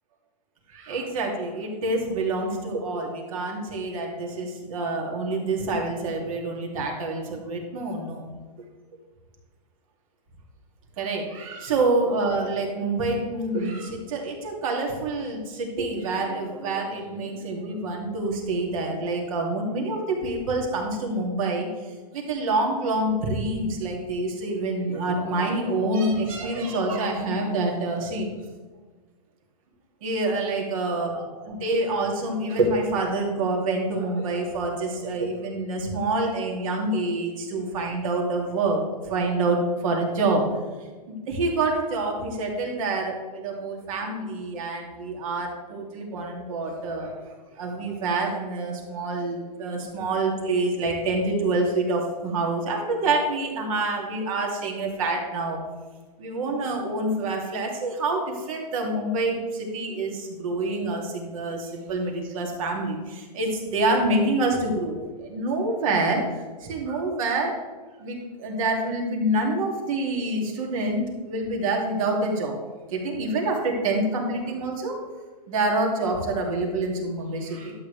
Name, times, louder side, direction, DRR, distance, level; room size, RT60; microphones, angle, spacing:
voice 1, 0.7-8.3 11.0-21.7 22.1-28.3 30.0-31.1 31.5-40.4 41.1-55.6 56.2-66.2 66.6-67.5 68.0-72.5 72.9-75.0 75.5-77.7, right 2 dB, 55° right, 0 dB, 2.7 m, -27 dB
11.5 x 8.6 x 3.4 m, 1.3 s
hypercardioid pair, 145°, 20 cm